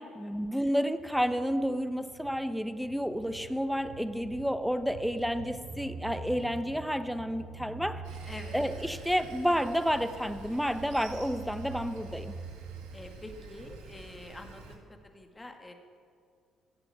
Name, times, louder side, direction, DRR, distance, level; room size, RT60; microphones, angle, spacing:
voice 1, 0.0-8.0 8.5-12.4, equal, ahead, 11 dB, 0.9 m, -30 dB
sound 1, 1.0-12.9, right 4 dB, 40° right, 3.1 m, -45 dB
Sawing, 8.0-14.8, right 3 dB, 85° right, 1.6 m, -48 dB
voice 2, 8.3-8.6 12.9-15.7, left 2 dB, 20° left, 5 dB, 1.9 m, -46 dB
15.5 x 6.9 x 8.3 m, 2.2 s
hypercardioid pair, 60°, 0 cm